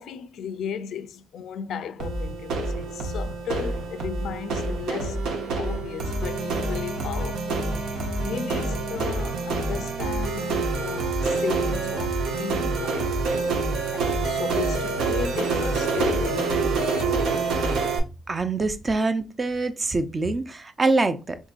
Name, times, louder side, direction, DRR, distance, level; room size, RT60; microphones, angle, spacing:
voice 1, 0.0-5.2 5.6-7.5 7.8-13.1 13.9-17.5, left 8 dB, 70° left, 0.4 m, -35 dB
sound 1, 2.0-18.0, right 3 dB, 85° right, 0.8 m, -26 dB
voice 2, 18.3-21.4, right 3 dB, 30° right, 0.5 m, -24 dB
3.6 x 3.0 x 2.4 m
cardioid pair, 90°, 0 cm